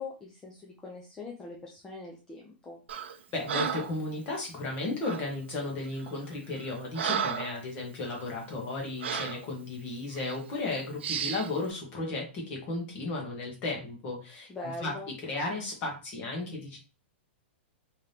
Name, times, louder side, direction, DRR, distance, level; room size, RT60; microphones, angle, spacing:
voice 1, 0.0-2.8 14.5-15.1, left 3 dB, 10° left, -2 dB, 0.5 m, -42 dB
Breathing, 2.9-3.2 3.5-4.0 5.0-5.3 6.0-6.1 6.5-7.6 8.1-8.2 9.0-9.4 10.1-10.4 11.0-11.5, right 7 dB, 75° right, 0.6 m, -33 dB
voice 2, 3.3-14.5 14.8-14.9 15.2-16.8, left 2 dB, 25° left, -1 dB, 1.3 m, -34 dB
3.6 x 2.8 x 3.3 m, 0.33 s
hypercardioid pair, 170°, 6 cm